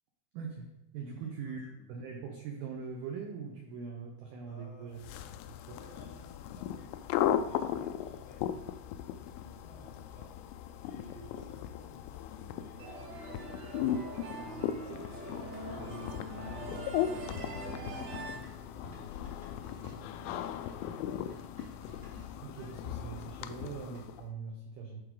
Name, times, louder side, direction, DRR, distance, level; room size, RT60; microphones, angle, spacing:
voice 1, 0.3-5.0 5.5-5.8 22.4-25.0, right 5 dB, 80° right, 1 dB, 2.1 m, -42 dB
voice 2, 1.0-1.9 4.4-5.0 5.7-7.0 7.2-8.5 9.2-10.4 10.8-20.8, left 2 dB, 55° left, -4 dB, 3.1 m, -55 dB
sound 1, 5.0-24.3, left 10 dB, 85° left, 2.8 m, -37 dB
sound 2, 12.8-18.4, right 2 dB, 65° right, 3.2 m, -43 dB
sound 3, 18.4-22.7 23.9-24.4, right 1 dB, 15° right, 2.2 m, -55 dB
14.0 x 4.8 x 3.8 m, 0.91 s
omnidirectional pair, 5.6 m